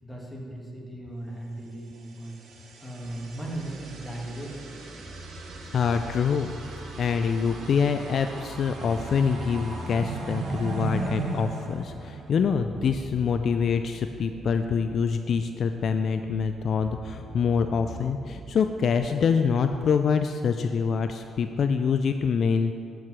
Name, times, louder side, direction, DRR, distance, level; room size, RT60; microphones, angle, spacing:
voice 1, 0.0-4.8, right 1 dB, 5° left, -3 dB, 1.7 m, -38 dB
sound 1, 2.0-12.7, right 3 dB, 70° right, 1.1 m, -38 dB
sound 2, 3.0-18.8, right 1 dB, 30° right, 0.8 m, -44 dB
voice 2, 5.7-6.5 6.8-22.7, left 6 dB, 55° left, 7 dB, 0.3 m, -25 dB
8.4 x 4.6 x 6.0 m, 2.4 s
cardioid pair, 90°, 0 cm